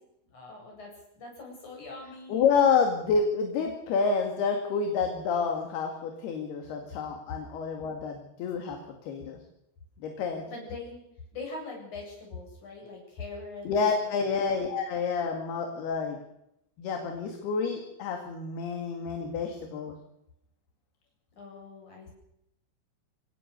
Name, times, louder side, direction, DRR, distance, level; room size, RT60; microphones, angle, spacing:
voice 1, 0.3-0.9 1.1-2.5 10.5-11.0 11.3-13.7 14.0-14.4 21.4-22.1, left 3 dB, 35° left, 0 dB, 9.0 m, -42 dB
voice 2, 2.3-9.4 10.0-10.5 13.7-16.2 16.8-19.9, left 5 dB, 60° left, 3 dB, 3.7 m, -28 dB
25.5 x 18.0 x 6.9 m, 0.81 s
omnidirectional pair, 5.8 m